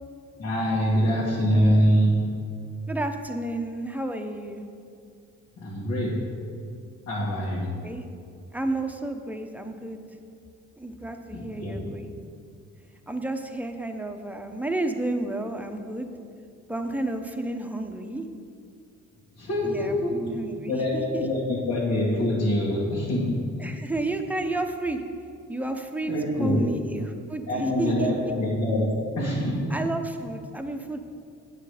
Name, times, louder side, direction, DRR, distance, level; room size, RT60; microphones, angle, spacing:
voice 1, 0.4-2.4 5.6-6.3 7.1-7.8 11.3-12.0 19.4-20.3 20.7-23.8 26.1-26.6 27.5-29.7, equal, 70° left, -7 dB, 2.2 m, -25 dB
voice 2, 2.9-4.6 7.8-8.1 8.5-10.0 10.8-12.1 13.1-16.1 16.7-18.2 19.6-21.2 23.6-25.0 25.5-26.1 26.4-28.3 29.7-31.0, right 2 dB, 5° right, 5 dB, 0.8 m, -31 dB
9.0 x 7.6 x 5.0 m, 2.3 s
cardioid pair, 90°, 30 cm